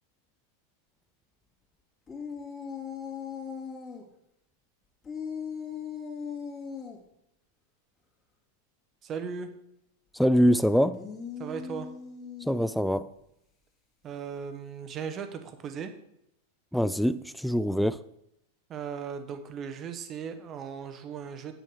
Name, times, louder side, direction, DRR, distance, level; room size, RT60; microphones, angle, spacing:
sound 1, 2.1-4.0 5.0-7.0 10.8-13.0, left 6 dB, 25° left, 2.7 m, -39 dB
voice 1, 9.0-9.5 11.4-11.9 14.0-15.9 18.7-21.5, right 6 dB, 30° right, 8 dB, 1.2 m, -37 dB
voice 2, 10.1-11.0 12.4-13.1 16.7-18.0, equal, ahead, 14 dB, 0.3 m, -24 dB
8.9 x 8.4 x 4.9 m, 0.77 s
figure-of-eight pair, 90°, 0 cm